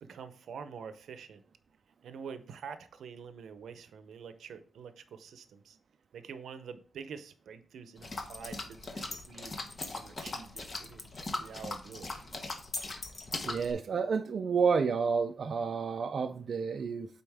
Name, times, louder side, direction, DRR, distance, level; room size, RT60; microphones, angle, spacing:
voice 1, 0.0-1.4 2.0-5.8 6.1-9.6 9.9-11.1 11.4-12.2, right 6 dB, 85° right, 0.6 m, -46 dB
sound 1, 8.0-13.7, left 2 dB, 30° left, 0.8 m, -39 dB
voice 2, 13.5-17.1, right 5 dB, 45° right, 0.3 m, -30 dB
8.6 x 4.2 x 3.5 m
wide cardioid pair, 170°, 0 cm